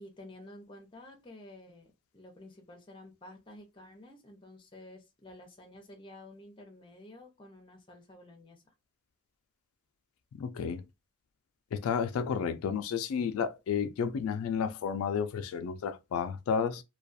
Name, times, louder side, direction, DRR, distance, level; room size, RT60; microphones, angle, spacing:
voice 1, 0.0-8.6, left 1 dB, 25° left, 0.6 m, -51 dB
voice 2, 10.4-10.8 11.7-16.8, left 6 dB, 80° left, 0.3 m, -31 dB
2.3 x 2.2 x 2.5 m
head